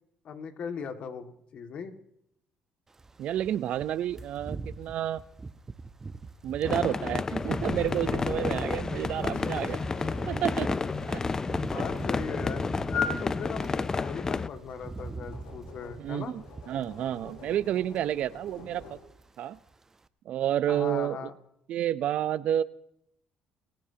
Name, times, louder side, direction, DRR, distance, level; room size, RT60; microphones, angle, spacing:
voice 1, 0.2-1.9 9.3-9.5 11.1-11.3 11.6-12.7 12.9-16.3 20.7-21.3, left 6 dB, 55° left, 7 dB, 2.0 m, -39 dB
sound 1, 2.9-13.9 14.2-17.6 17.9-18.2 18.5-19.3 19.6-19.8, right 3 dB, 20° right, 0.8 m, -43 dB
voice 2, 3.2-5.2 6.4-9.8 10.3-10.8 11.1-11.2 16.0-19.0 19.4-19.6 20.3-21.3 21.7-22.6, right 11 dB, 65° right, 17 dB, 0.7 m, -30 dB
sound 2, 6.6-14.5, left 4 dB, 25° left, 0.5 m, -31 dB
sound 3, 7.7-19.0, left 5 dB, 75° left, 7.3 m, -42 dB
29.5 x 15.5 x 2.9 m, 0.75 s
cardioid pair, 100°, 2 cm